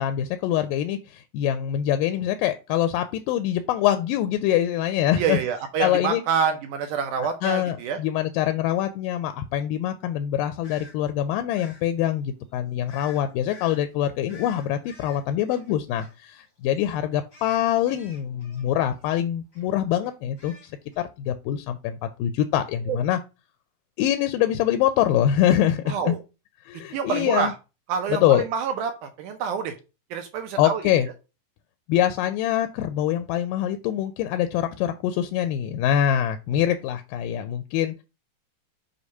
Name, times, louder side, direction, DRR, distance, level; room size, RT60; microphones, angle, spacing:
voice 1, 0.0-5.4 5.8-6.2 7.4-20.7 21.0-23.2 24.0-26.2 26.7-27.5 28.1-28.4 30.6-31.1 31.9-38.0, left 11 dB, 80° left, 9 dB, 2.1 m, -24 dB
voice 2, 5.1-8.0 22.9-23.0 25.9-26.2 26.9-27.5 27.9-29.7 30.1-30.8, right 7 dB, 80° right, 6 dB, 1.9 m, -27 dB
sound 1, 10.6-10.9 11.5-11.8 12.9-13.2 13.5-13.8 14.3-16.5 16.7-16.9 17.3-19.1 19.5-19.7 20.0-21.0, left 4 dB, 45° left, 0.8 m, -48 dB
6.4 x 2.8 x 5.4 m, 0.29 s
omnidirectional pair, 4.2 m